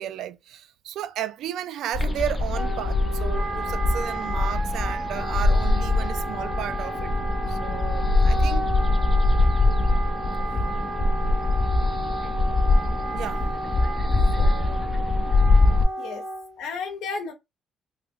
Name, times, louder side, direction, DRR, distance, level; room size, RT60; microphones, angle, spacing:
voice 1, 0.0-7.1 7.5-8.7 10.5-10.6 13.1-13.5 14.4-14.9, right 10 dB, 80° right, 0.3 m, -34 dB
sound 1, 1.9-15.8, left 2 dB, 30° left, 0.5 m, -23 dB
Wind instrument woodwind instrument, 2.5-16.6, right 2 dB, 20° right, 2.2 m, -33 dB
voice 2, 16.6-17.3, left 5 dB, 90° left, 0.6 m, -33 dB
3.2 x 2.0 x 3.5 m
cardioid pair, 90°, 0 cm